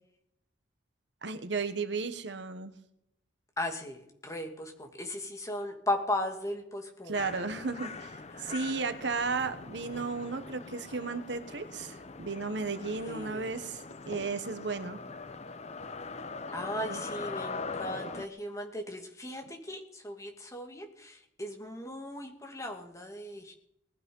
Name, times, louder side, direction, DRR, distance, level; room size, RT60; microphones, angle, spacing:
voice 1, 1.2-2.7 7.1-15.0 16.9-17.0, right 4 dB, 65° right, 10 dB, 1.3 m, -34 dB
voice 2, 3.6-7.2 8.3-8.7 13.1-13.6 16.5-23.5, left 1 dB, 15° left, 3 dB, 2.5 m, -37 dB
sound 1, 7.1-18.3, left 4 dB, 35° left, 0.8 m, -42 dB
20.0 x 12.0 x 5.5 m, 0.75 s
head